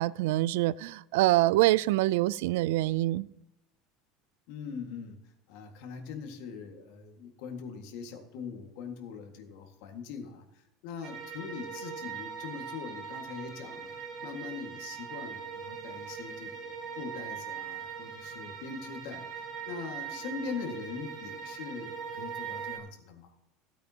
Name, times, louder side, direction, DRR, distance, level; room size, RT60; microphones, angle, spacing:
voice 1, 0.0-3.3, right 17 dB, 85° right, 0.3 m, -25 dB
voice 2, 4.5-23.3, left 5 dB, 65° left, 1.8 m, -42 dB
sound 1, 11.0-22.8, right 7 dB, 35° right, 1.7 m, -41 dB
16.0 x 8.6 x 2.9 m
cardioid pair, 150°, 0 cm